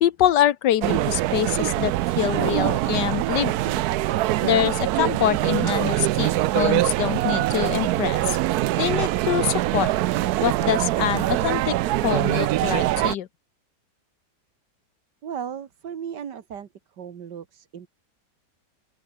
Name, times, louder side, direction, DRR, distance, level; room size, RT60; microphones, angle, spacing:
voice 1, 0.0-3.8 4.4-8.4 8.8-9.9 10.4-13.3, left 11 dB, 85° left, 1.5 m, -25 dB
sound 1, 0.8-13.1, right 16 dB, 75° right, 1.0 m, -23 dB
voice 2, 15.2-16.7 17.0-17.9, right 8 dB, 90° right, 2.1 m, -35 dB
open air
omnidirectional pair, 1.8 m